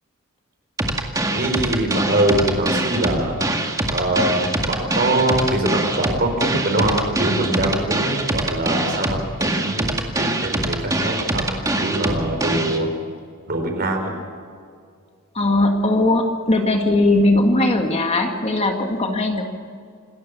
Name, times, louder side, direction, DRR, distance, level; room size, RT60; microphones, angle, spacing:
sound 1, 0.8-12.8, right 1 dB, 15° right, 2.0 m, -23 dB
voice 1, 1.3-3.4 3.9-12.9 13.5-14.1, right 1 dB, 45° right, 3 dB, 4.9 m, -23 dB
voice 2, 15.3-19.4, left 2 dB, 30° left, 3 dB, 2.0 m, -19 dB
27.0 x 13.5 x 7.0 m, 2.2 s
head